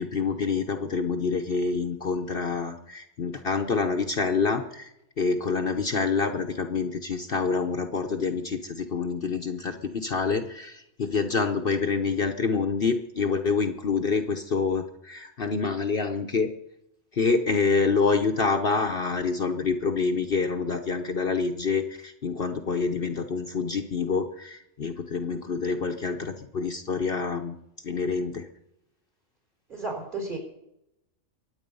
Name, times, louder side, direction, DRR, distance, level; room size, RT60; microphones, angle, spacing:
voice 1, 0.0-4.9 5.2-16.5 17.1-27.6 27.8-28.5, left 4 dB, 50° left, 5 dB, 1.1 m, -27 dB
voice 2, 29.7-30.4, right 3 dB, 40° right, 2 dB, 4.3 m, -33 dB
23.5 x 9.0 x 5.4 m, 0.83 s
omnidirectional pair, 1.3 m